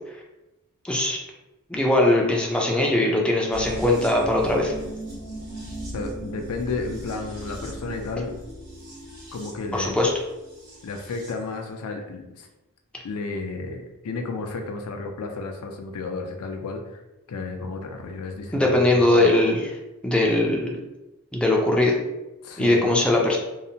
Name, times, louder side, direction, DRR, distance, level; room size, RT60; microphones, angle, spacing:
voice 1, 0.8-1.2 1.7-4.7 9.7-10.1 18.5-19.8 20.0-20.8 21.3-22.0 22.6-23.4, left 1 dB, 5° left, -1 dB, 0.3 m, -20 dB
sound 1, 3.5-11.4 11.7-11.8, right 1 dB, 70° right, 1.3 m, -38 dB
voice 2, 5.9-8.3 9.3-10.0 10.8-12.5 13.0-17.0 17.3-19.3 22.4-22.8, left 3 dB, 75° left, 4 dB, 0.4 m, -32 dB
2.7 x 2.0 x 2.7 m, 1.0 s
head